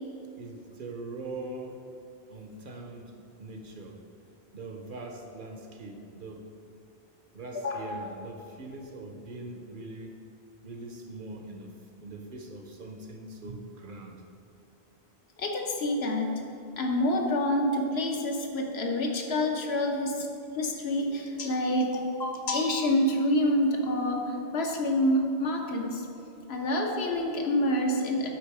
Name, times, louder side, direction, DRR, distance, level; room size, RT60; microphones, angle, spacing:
voice 1, 0.4-1.8 2.3-4.0 4.5-6.4 7.3-10.2 10.6-14.2, right 2 dB, 55° right, 3 dB, 0.8 m, -42 dB
voice 2, 7.5-7.9 15.4-16.4 16.8-20.3 20.5-26.1 26.5-28.3, left 1 dB, 75° left, 2 dB, 1.1 m, -27 dB
8.8 x 4.0 x 4.7 m, 2.7 s
omnidirectional pair, 1.1 m